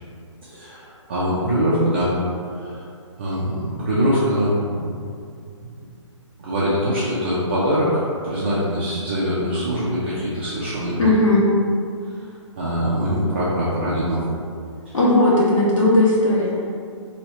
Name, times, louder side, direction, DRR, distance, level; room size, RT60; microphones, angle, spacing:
voice 1, 0.4-2.1 2.4-2.9 3.2-4.9 5.6-5.7 6.4-11.1 12.6-14.2 14.9-15.0, equal, 25° right, -9 dB, 0.4 m, -23 dB
voice 2, 11.0-11.4 14.9-16.7, left 1 dB, 85° left, -7 dB, 1.4 m, -17 dB
2.9 x 2.8 x 4.1 m, 2.4 s
hypercardioid pair, 170°, 16 cm